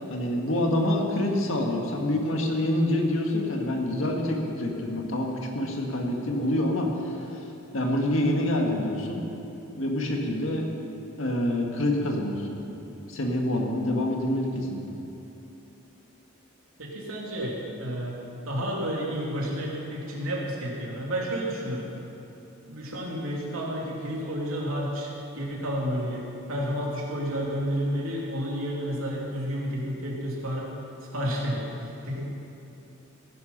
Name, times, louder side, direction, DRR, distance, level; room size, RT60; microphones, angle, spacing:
voice 1, 0.1-7.5 7.7-9.2 9.8-10.6 11.2-12.6 13.1-15.0, left 1 dB, 70° left, 1 dB, 1.9 m, -26 dB
voice 2, 16.8-18.2 18.4-21.9 22.7-30.7 31.1-32.3, equal, 90° right, -3 dB, 2.9 m, -31 dB
16.5 x 10.5 x 5.5 m, 3.0 s
head